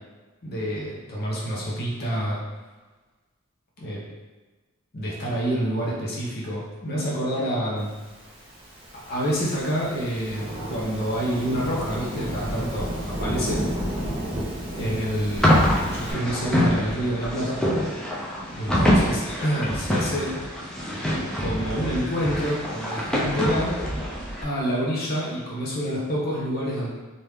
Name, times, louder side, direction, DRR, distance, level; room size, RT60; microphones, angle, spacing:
voice 1, 0.4-2.4 3.8-4.0 4.9-7.9 8.9-13.6 14.8-17.6 18.6-20.4 21.4-23.7 24.4-26.9, equal, 50° left, -5 dB, 0.9 m, -27 dB
Thunderstorm / Rain, 8.4-16.1, equal, 30° right, 0.9 m, -32 dB
sound 1, 15.4-24.4, equal, 5° left, 0.4 m, -25 dB
3.0 x 2.6 x 3.4 m, 1.3 s
head